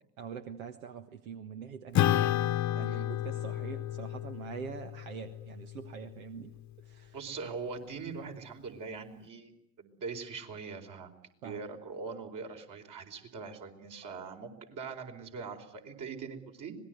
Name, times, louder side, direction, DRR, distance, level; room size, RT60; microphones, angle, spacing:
voice 1, 0.2-6.5 6.8-7.1 11.4-11.6, right 7 dB, 80° right, 8 dB, 1.4 m, -44 dB
Acoustic guitar / Strum, 1.9-6.7, left 13 dB, 45° left, 1.0 m, -32 dB
voice 2, 7.1-9.5 9.8-11.1 11.4-16.8, right 5 dB, 50° right, 4 dB, 4.7 m, -42 dB
25.5 x 20.0 x 9.3 m, 0.76 s
hypercardioid pair, 70°, 41 cm